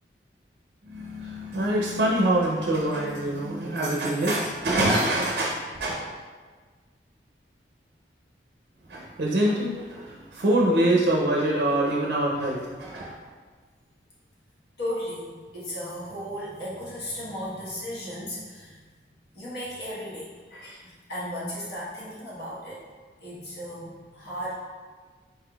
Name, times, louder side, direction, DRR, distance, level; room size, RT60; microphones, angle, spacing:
voice 1, 0.8-6.1 8.9-13.2, right 1 dB, 55° right, -2 dB, 0.4 m, -25 dB
voice 2, 14.8-18.9 19.3-22.9 23.2-24.5, equal, 65° left, -8 dB, 1.2 m, -35 dB
4.4 x 3.6 x 2.3 m, 1.5 s
head